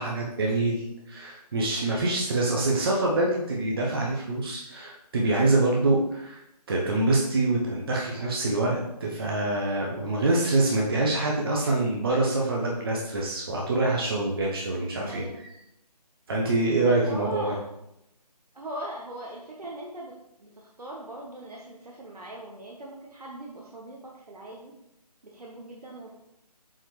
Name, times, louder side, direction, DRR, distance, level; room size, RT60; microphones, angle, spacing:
voice 1, 0.0-6.4 6.7-15.3 16.3-17.4, right 2 dB, 35° right, -2 dB, 0.9 m, -25 dB
voice 2, 15.0-15.4 16.8-17.6 18.5-24.7 25.2-26.1, right 1 dB, 70° right, -2 dB, 1.2 m, -40 dB
7.5 x 4.3 x 3.2 m, 0.84 s
figure-of-eight pair, 155°, 21 cm